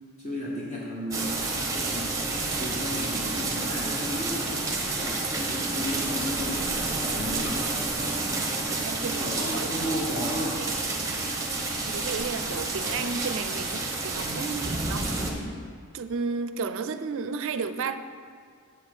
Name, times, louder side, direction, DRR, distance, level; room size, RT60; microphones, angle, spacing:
voice 1, 0.2-2.2 2.6-4.6 4.9-7.6 8.3-8.7 9.2-10.7 14.2-14.5, left 1 dB, 30° left, -5 dB, 1.1 m, -34 dB
sound 1, 1.1-15.3, right 3 dB, 15° right, 0.9 m, -29 dB
voice 2, 8.5-9.9 11.9-15.3 15.9-18.0, right 5 dB, 60° right, 10 dB, 0.4 m, -33 dB
7.8 x 6.5 x 4.9 m, 2.1 s
head